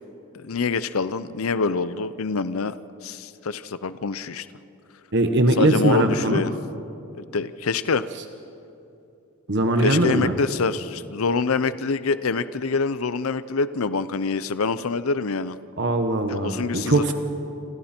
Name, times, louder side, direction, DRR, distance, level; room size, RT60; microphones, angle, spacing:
voice 1, 0.3-2.7 3.0-4.5 5.6-6.5 7.1-8.0 9.8-15.6 16.3-17.1, left 4 dB, 80° left, 14 dB, 0.6 m, -25 dB
voice 2, 5.1-6.4 9.5-10.3 15.8-17.1, right 2 dB, 55° right, 6 dB, 1.4 m, -21 dB
28.5 x 26.0 x 4.4 m, 2.8 s
head